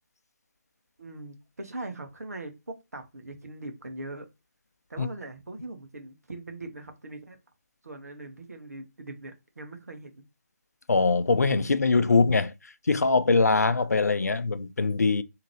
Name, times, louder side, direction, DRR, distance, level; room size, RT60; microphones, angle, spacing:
voice 1, 1.0-2.5 2.9-4.3 4.9-7.4 7.8-10.2, right 2 dB, 70° right, 1.1 m, -41 dB
voice 2, 10.9-12.5 12.9-15.2, left 4 dB, 75° left, 0.5 m, -22 dB
3.9 x 2.9 x 3.1 m
figure-of-eight pair, 150°, 9 cm